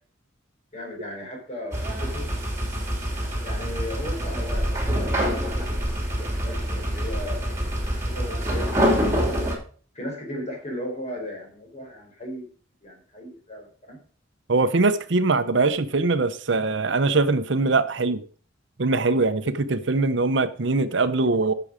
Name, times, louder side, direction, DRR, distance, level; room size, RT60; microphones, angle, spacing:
voice 1, 0.7-2.3 3.4-7.6 8.1-8.7 9.9-12.5 12.8-14.0, left 1 dB, 35° left, 4.3 m, -36 dB
sound 1, 1.7-9.5, equal, 15° right, 3.0 m, -26 dB
voice 2, 14.5-18.2 18.8-21.5, right 3 dB, 65° right, 0.8 m, -22 dB
11.0 x 6.9 x 5.0 m
head